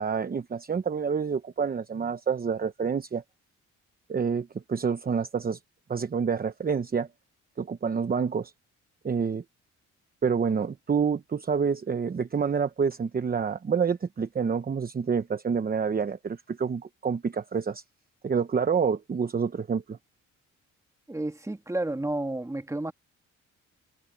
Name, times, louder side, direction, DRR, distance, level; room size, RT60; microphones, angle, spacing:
voice 1, 0.0-3.2 4.1-5.6 5.9-7.1 7.6-8.5 9.0-9.4 10.2-17.8 18.2-20.0, right 6 dB, 30° right, 1.0 m, -28 dB
voice 2, 21.1-22.9, right 2 dB, 10° right, 1.9 m, -31 dB
cardioid pair, 90°, 30 cm